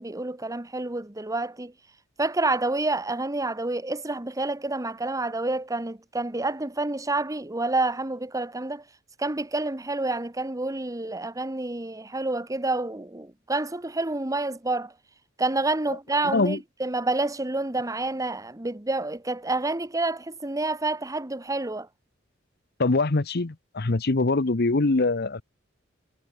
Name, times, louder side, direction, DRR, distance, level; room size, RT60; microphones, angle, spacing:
voice 1, 0.0-1.7 2.2-8.8 9.2-14.9 15.4-21.9, right 2 dB, 15° right, 1.2 m, -28 dB
voice 2, 16.2-16.6 22.8-25.4, left 3 dB, 55° left, 1.0 m, -23 dB
head